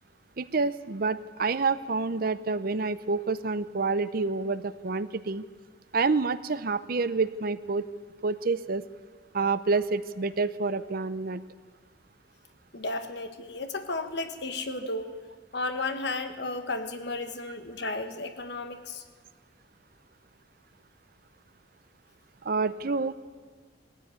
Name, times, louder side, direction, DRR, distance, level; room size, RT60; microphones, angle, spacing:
voice 1, 0.4-5.4 5.9-7.9 8.2-8.8 9.3-11.4 22.4-23.1, right 4 dB, 50° right, 14 dB, 0.7 m, -28 dB
voice 2, 12.7-15.1 15.5-19.0, left 2 dB, 60° left, 8 dB, 1.4 m, -33 dB
19.5 x 14.0 x 9.4 m, 1.5 s
head